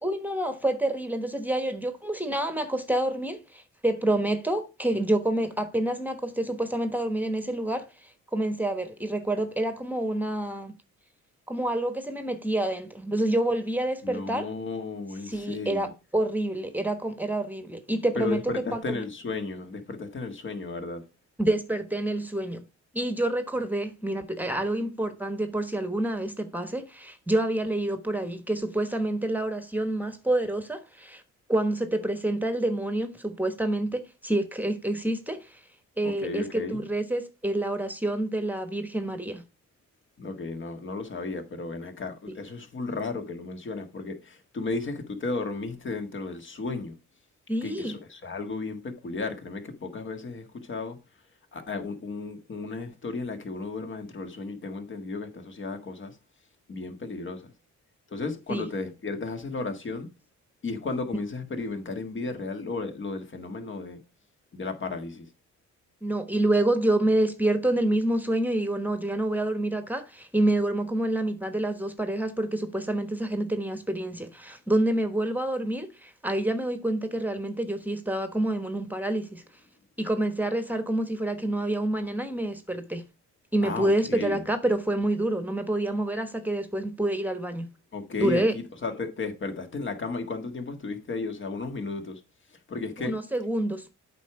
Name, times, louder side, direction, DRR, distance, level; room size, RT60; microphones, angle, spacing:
voice 1, 0.0-10.7 11.5-14.5 15.3-18.4 18.7-19.0 21.4-22.7 22.9-31.2 31.5-35.6 36.0-39.4 42.3-42.4 47.5-48.0 58.5-58.7 66.0-79.4 80.0-83.0 83.5-87.7 88.2-88.5 93.0-93.9, right 1 dB, 5° right, 1.2 m, -27 dB
voice 2, 14.0-15.9 18.1-21.0 36.0-36.8 40.2-46.9 47.6-51.0 51.5-56.2 56.7-57.5 58.1-60.1 60.6-64.0 64.5-65.3 83.6-84.4 87.9-92.2 92.7-93.2, left 3 dB, 40° left, 1.7 m, -34 dB
8.3 x 4.9 x 4.8 m
cardioid pair, 90°, 30 cm